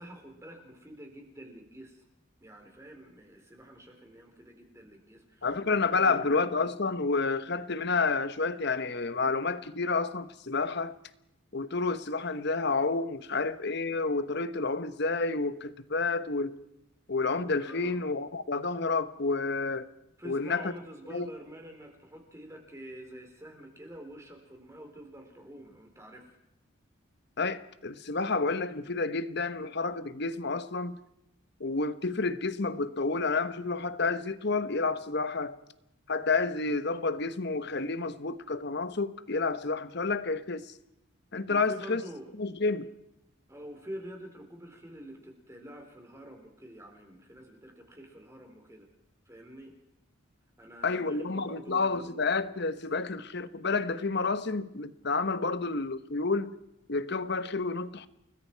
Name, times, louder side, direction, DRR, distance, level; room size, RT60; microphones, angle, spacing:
voice 1, 0.0-2.1 2.4-6.4 17.6-18.1 20.2-26.4 41.5-42.3 43.5-48.9 49.3-49.7 50.6-52.1, equal, 15° right, 4.1 m, -47 dB
voice 2, 5.4-10.9 11.5-16.5 17.1-19.9 20.2-20.7 21.1-21.3 27.4-31.0 31.6-35.6 36.1-40.7 41.3-42.0 42.4-42.9 50.8-56.5 56.9-58.1, left 3 dB, 55° left, 1.2 m, -30 dB
30.0 x 20.0 x 4.7 m
head